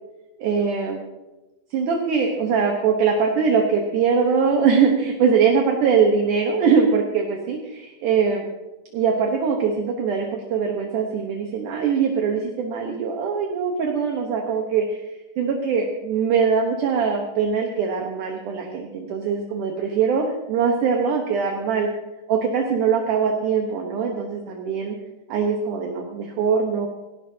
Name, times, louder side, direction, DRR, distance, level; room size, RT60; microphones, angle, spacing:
voice 1, 0.4-1.0 1.7-8.4 8.9-21.9 22.3-25.0 25.3-26.9, right 6 dB, 70° right, 1 dB, 2.5 m, -22 dB
18.0 x 17.5 x 2.8 m, 1.1 s
omnidirectional pair, 4.1 m